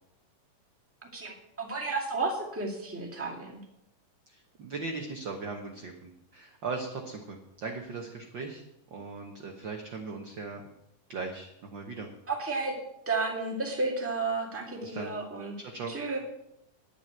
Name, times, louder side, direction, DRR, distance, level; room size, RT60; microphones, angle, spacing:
voice 1, 1.1-3.5 12.3-12.7 13.0-15.5 15.9-16.2, right 3 dB, 5° right, -2 dB, 1.6 m, -32 dB
voice 2, 4.6-8.6 8.9-10.6 11.1-12.1 14.8-15.1 15.7-15.9, right 4 dB, 65° right, 2 dB, 1.1 m, -38 dB
10.0 x 7.2 x 8.9 m, 0.84 s
omnidirectional pair, 3.7 m